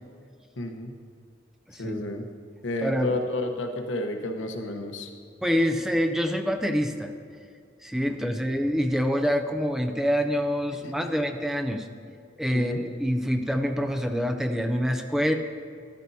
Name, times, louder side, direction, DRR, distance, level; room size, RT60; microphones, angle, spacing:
voice 1, 0.6-0.9 1.8-2.2 2.6-5.1 8.1-8.3 10.8-10.9 12.5-12.8, left 1 dB, 85° left, 4 dB, 1.0 m, -31 dB
voice 2, 1.7-2.0 2.8-3.2 5.4-7.1 7.8-11.9 12.4-15.3, equal, ahead, 5 dB, 0.5 m, -26 dB
13.5 x 11.5 x 2.8 m, 2.3 s
head